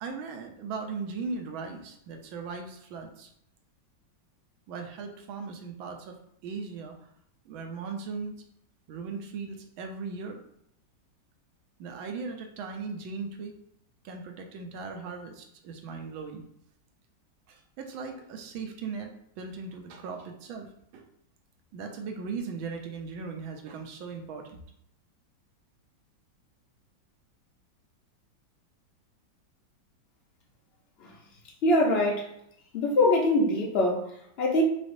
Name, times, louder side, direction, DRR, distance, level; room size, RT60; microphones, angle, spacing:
voice 1, 0.0-3.3 4.7-6.2 6.4-7.0 7.4-8.4 8.9-10.4 11.8-13.5 14.0-16.4 17.5-20.7 20.9-21.0 21.7-24.6, right 4 dB, 90° right, 4 dB, 1.5 m, -38 dB
voice 2, 31.6-32.3 32.7-34.6, left 1 dB, 50° left, -1 dB, 0.8 m, -24 dB
4.8 x 3.4 x 2.6 m, 0.72 s
omnidirectional pair, 2.1 m